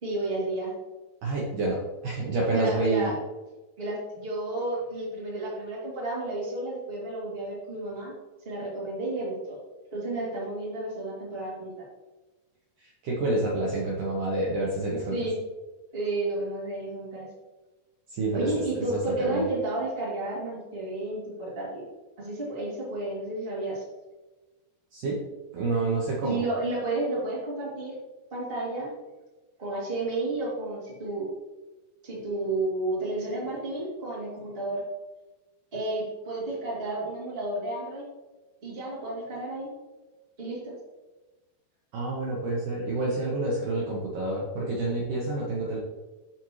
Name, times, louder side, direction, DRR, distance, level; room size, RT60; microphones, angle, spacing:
voice 1, 0.0-0.7 2.5-3.1 3.8-8.1 8.4-9.6 9.9-11.8 14.9-15.4 15.9-17.3 18.3-21.8 22.2-23.8 26.2-28.0 28.3-28.9 29.6-31.3 32.0-34.8 35.7-38.0 38.6-39.7 40.4-40.7, right 2 dB, 20° right, -7 dB, 2.0 m, -31 dB
voice 2, 1.2-3.1 13.0-15.2 18.1-19.5 24.9-25.2 25.5-26.4 41.9-45.8, right 2 dB, 65° right, -5 dB, 2.3 m, -28 dB
11.5 x 4.4 x 3.1 m, 1.2 s
omnidirectional pair, 4.7 m